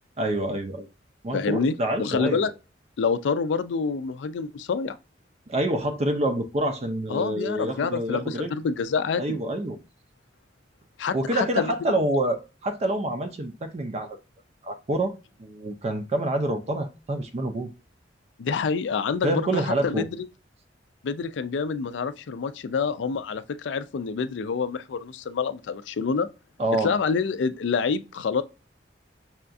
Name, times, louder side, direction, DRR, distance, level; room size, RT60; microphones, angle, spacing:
voice 1, 0.2-0.9 1.2-2.5 5.5-8.5 9.2-9.8 11.1-14.2 14.6-15.1 15.4-17.7 19.2-20.1 26.6-26.9, right 1 dB, 35° right, 0.4 m, -27 dB
voice 2, 1.3-2.5 3.0-5.0 7.1-9.4 11.0-11.7 18.4-20.3 21.0-26.3 26.8-28.4, left 5 dB, 75° left, 0.4 m, -27 dB
5.6 x 2.3 x 2.5 m
head